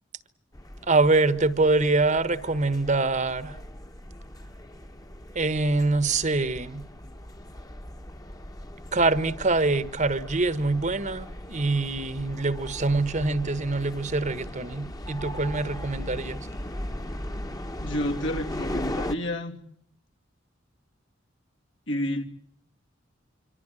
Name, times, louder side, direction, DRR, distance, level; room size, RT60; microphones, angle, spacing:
sound 1, 0.5-19.1, left 1 dB, 20° left, 1.4 m, -38 dB
voice 1, 0.9-3.5 5.3-6.8 8.9-16.5, right 3 dB, 40° right, 1.3 m, -24 dB
voice 2, 17.8-19.6 21.9-22.2, left 1 dB, 70° left, 3.1 m, -29 dB
26.5 x 25.0 x 7.7 m
head